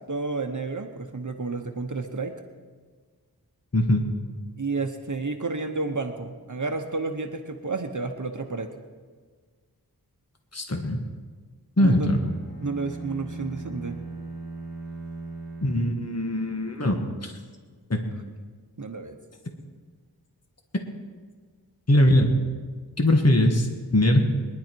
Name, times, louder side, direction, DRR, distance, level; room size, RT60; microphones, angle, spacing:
voice 1, 0.1-2.3 4.6-8.7 11.8-12.1 12.6-14.0 18.8-19.1, right 3 dB, 50° right, 5 dB, 1.0 m, -31 dB
voice 2, 3.7-4.1 10.5-11.0 11.8-12.2 15.6-17.0 17.2-17.3 17.9-18.0 21.9-22.3 23.0-24.2, left 1 dB, 40° left, 3 dB, 1.6 m, -21 dB
sound 1, 12.2-16.6, right 3 dB, 75° left, 5.9 m, -39 dB
22.0 x 11.0 x 4.6 m, 1.5 s
wide cardioid pair, 60°, 39 cm